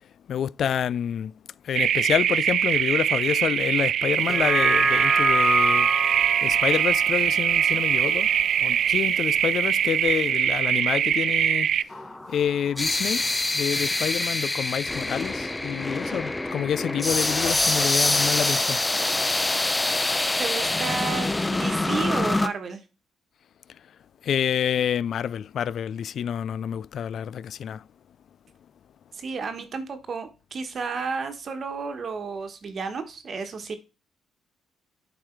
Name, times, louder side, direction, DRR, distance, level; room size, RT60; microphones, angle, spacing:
voice 1, 0.3-1.3 1.6-8.3 8.6-11.7 12.3-13.2 13.5-18.8 24.2-27.8, left 9 dB, 65° left, 0.3 m, -28 dB
sound 1, 1.8-11.8, right 9 dB, 65° right, 0.3 m, -22 dB
sound 2, 4.2-8.8 9.2-9.3, right 1 dB, 15° right, 1.2 m, -27 dB
sound 3, 11.9-22.5, left 2 dB, 15° left, 0.6 m, -25 dB
voice 2, 20.4-22.8 29.1-33.7, right 5 dB, 50° right, 1.3 m, -32 dB
8.7 x 4.9 x 4.5 m
cardioid pair, 90°, 0 cm